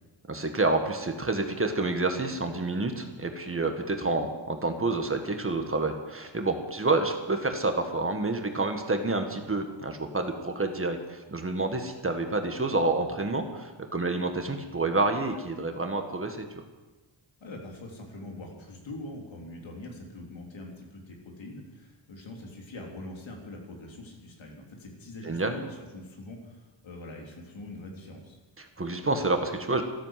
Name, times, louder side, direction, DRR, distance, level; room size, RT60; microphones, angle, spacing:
voice 1, 0.3-16.4 25.2-25.5 28.6-29.8, right 2 dB, 25° right, 5 dB, 1.7 m, -28 dB
voice 2, 17.4-28.4, left 1 dB, 70° left, 0 dB, 3.9 m, -43 dB
13.5 x 13.5 x 7.6 m, 1.2 s
wide cardioid pair, 110°, 48 cm